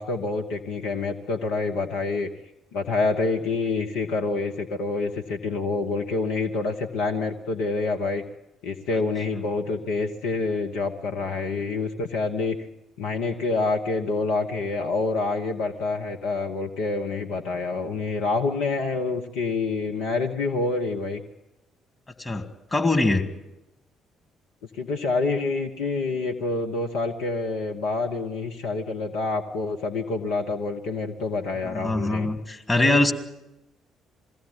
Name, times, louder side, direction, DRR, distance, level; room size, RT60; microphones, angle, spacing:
voice 1, 0.0-2.3 2.7-8.2 8.6-12.6 13.0-21.2 24.7-32.3, left 3 dB, 65° left, 3 dB, 1.1 m, -27 dB
voice 2, 22.7-23.2 31.6-33.1, left 2 dB, 20° left, 5 dB, 2.5 m, -22 dB
21.5 x 16.0 x 9.3 m, 0.96 s
figure-of-eight pair, 45°, 0 cm